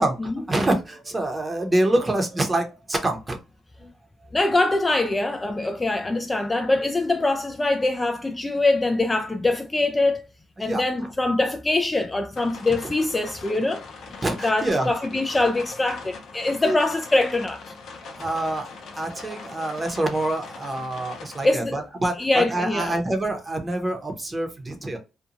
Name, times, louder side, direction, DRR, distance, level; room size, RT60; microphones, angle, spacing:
voice 1, 0.5-3.4 3.8-3.9 10.6-10.8 14.2-14.9 16.6-16.8 18.1-18.7 19.0-25.0, right 1 dB, 20° right, 0.8 m, -26 dB
voice 2, 4.3-10.2 10.6-13.8 14.4-17.6 21.4-21.7 22.2-22.9, left 2 dB, 20° left, 0.3 m, -23 dB
sound 1, 12.4-21.5, left 4 dB, 70° left, 0.6 m, -41 dB
2.6 x 2.3 x 2.8 m
cardioid pair, 90°, 0 cm